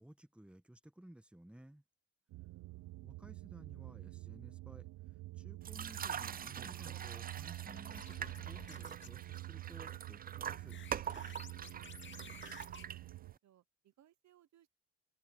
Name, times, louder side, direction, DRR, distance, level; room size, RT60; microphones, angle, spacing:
voice 1, 0.0-1.8 3.0-4.9 5.4-10.8, right 1 dB, 5° right, 1.3 m, -57 dB
sound 1, 2.3-13.3, right 19 dB, 80° right, 0.7 m, -48 dB
voice 2, 2.4-3.0 12.1-13.0 13.4-14.7, right 13 dB, 65° right, 1.1 m, -67 dB
sound 2, 5.6-13.4, right 8 dB, 30° right, 0.5 m, -45 dB
sound 3, 7.4-9.2 10.6-12.9, left 6 dB, 40° left, 2.1 m, -55 dB
open air
cardioid pair, 90°, 30 cm